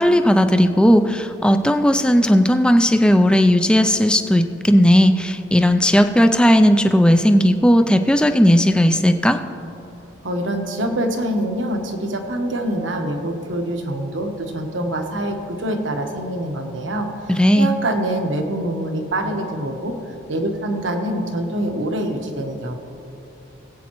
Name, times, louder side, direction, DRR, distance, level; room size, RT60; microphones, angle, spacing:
voice 1, 0.0-9.4 17.3-17.7, equal, 5° left, 8 dB, 0.3 m, -15 dB
voice 2, 10.2-19.9 20.3-22.7, right 1 dB, 75° right, 4 dB, 1.2 m, -25 dB
20.0 x 8.4 x 3.0 m, 2.8 s
head